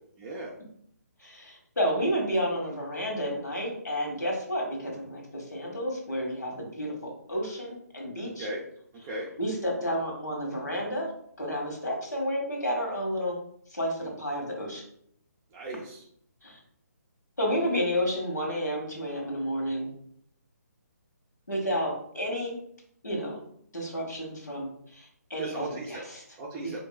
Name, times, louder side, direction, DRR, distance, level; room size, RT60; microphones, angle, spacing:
voice 1, 0.2-0.5 8.4-8.6 9.0-9.3 15.5-16.0 25.4-26.0 26.4-26.8, right 2 dB, 15° right, -3 dB, 0.4 m, -36 dB
voice 2, 1.2-8.5 9.4-11.1 11.4-13.4 13.7-14.8 16.4-16.6 17.4-19.9 21.5-22.6 23.0-23.4 23.7-24.7 24.9-26.2 26.7-26.8, equal, 90° left, -1 dB, 1.2 m, -31 dB
3.8 x 2.6 x 2.2 m, 0.68 s
figure-of-eight pair, 145°, 9 cm